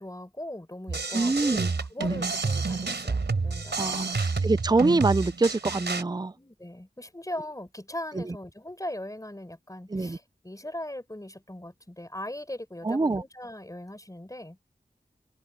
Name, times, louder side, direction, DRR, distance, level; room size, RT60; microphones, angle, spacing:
voice 1, 0.0-4.3 6.4-14.6, left 1 dB, 20° left, 4.4 m, -39 dB
sound 1, 0.9-6.0, right 4 dB, 80° right, 3.8 m, -29 dB
voice 2, 1.1-1.7 2.0-2.2 3.7-6.3 8.2-8.3 9.9-10.2 12.8-13.2, right 3 dB, 25° right, 0.5 m, -25 dB
cardioid pair, 40°, 18 cm